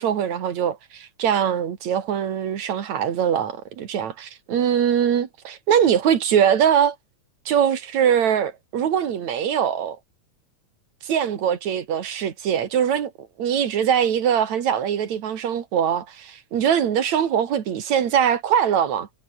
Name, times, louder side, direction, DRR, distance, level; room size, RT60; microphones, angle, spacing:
voice 1, 0.0-7.0 7.5-10.0 11.0-13.1 13.4-19.1, right 8 dB, 70° right, 3.2 m, -22 dB
omnidirectional pair, 3.4 m